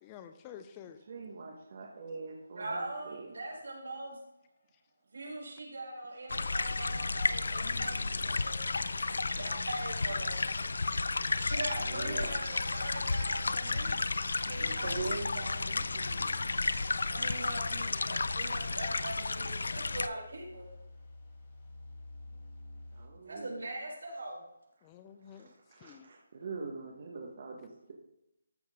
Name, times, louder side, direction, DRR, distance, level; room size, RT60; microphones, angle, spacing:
voice 1, 0.0-1.0 24.8-26.1, left 9 dB, 15° left, 9 dB, 0.4 m, -50 dB
voice 2, 1.1-3.3 11.8-12.4 14.3-16.4 22.9-23.6 25.2-27.9, right 3 dB, 35° right, 0 dB, 1.3 m, -43 dB
voice 3, 2.5-4.2 5.1-8.8 9.3-10.4 11.4-15.0 17.1-20.7 23.2-24.4, right 2 dB, 70° right, -1 dB, 4.2 m, -41 dB
sound 1, 6.3-20.1, left 3 dB, 70° left, 0.5 m, -32 dB
sound 2, 9.4-23.1, left 2 dB, 30° left, 1.4 m, -51 dB
13.5 x 6.3 x 3.6 m, 0.84 s
hypercardioid pair, 175°, 0 cm